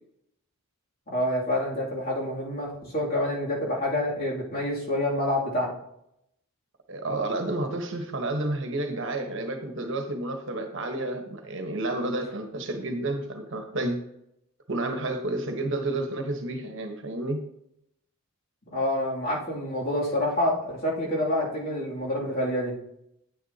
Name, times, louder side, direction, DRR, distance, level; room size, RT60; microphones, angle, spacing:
voice 1, 1.1-5.8 18.7-22.7, left 1 dB, 45° left, -5 dB, 2.7 m, -27 dB
voice 2, 6.9-14.0 14.7-17.4, right 2 dB, 60° right, 4 dB, 1.2 m, -30 dB
9.5 x 8.8 x 2.9 m, 0.78 s
head